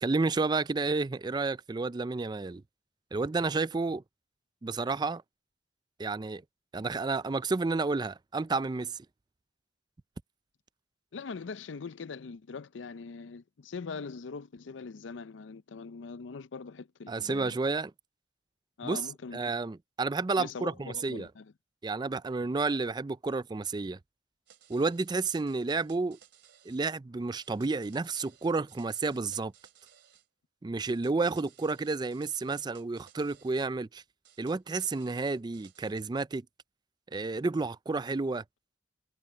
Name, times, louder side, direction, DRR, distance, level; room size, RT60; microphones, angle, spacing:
voice 1, 0.0-2.6 3.1-4.0 4.6-5.2 6.0-6.4 6.7-9.0 17.1-17.9 18.8-19.0 19.3-21.3 21.8-24.0 24.7-26.2 26.7-29.5 30.6-34.0 34.4-36.5 37.1-38.4, right 3 dB, 25° right, 0.4 m, -31 dB
voice 2, 11.1-17.5 18.8-19.5 20.4-21.5, left 5 dB, 90° left, 0.5 m, -42 dB
sound 1, 24.5-26.8 27.4-30.3 30.8-33.7 34.2-36.0, right 9 dB, 65° right, 2.9 m, -60 dB
head